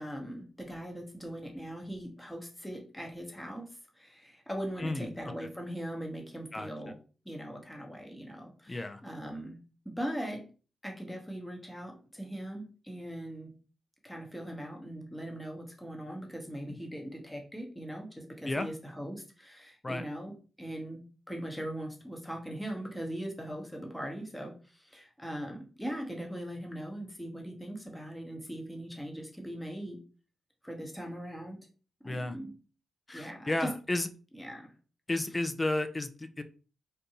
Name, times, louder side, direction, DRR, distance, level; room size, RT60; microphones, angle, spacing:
voice 1, 0.0-3.7 4.0-6.9 7.2-9.6 9.8-10.4 10.8-13.5 14.0-20.3 20.6-30.0 30.6-31.6 32.0-32.5 33.1-33.7 34.3-34.7, equal, 10° left, 1 dB, 0.9 m, -40 dB
voice 2, 4.8-5.1 5.4-5.5 6.5-6.7 8.7-9.0 18.5-18.7 19.8-20.0 32.0-32.4 33.1-34.1 35.1-36.4, left 2 dB, 30° left, 9 dB, 0.4 m, -32 dB
2.6 x 2.2 x 2.8 m, 0.37 s
supercardioid pair, 40°, 0 cm